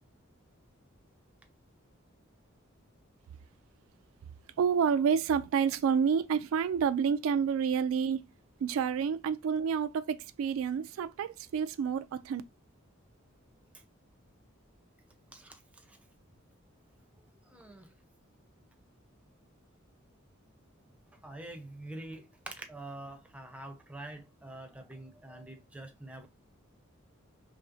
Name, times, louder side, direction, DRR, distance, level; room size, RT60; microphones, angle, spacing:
voice 1, 4.6-8.3 8.6-12.4, right 7 dB, 80° right, 0.3 m, -29 dB
voice 2, 15.3-16.0 17.5-17.9 21.2-26.3, right 1 dB, 5° right, 0.6 m, -46 dB
4.1 x 3.1 x 2.5 m
head